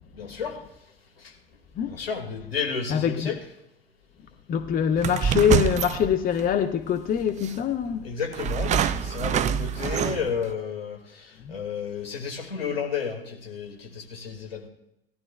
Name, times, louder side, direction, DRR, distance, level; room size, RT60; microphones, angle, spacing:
voice 1, 0.1-0.6 1.9-3.4 8.0-14.7, left 6 dB, 75° left, 2.0 m, -32 dB
voice 2, 2.9-3.4 4.5-8.1 11.4-11.5, left 8 dB, 30° left, 0.8 m, -24 dB
sound 1, 5.0-6.5 7.4-7.5 8.3-10.4, right 8 dB, 25° right, 0.5 m, -26 dB
18.5 x 12.0 x 2.3 m
figure-of-eight pair, 70°, 30 cm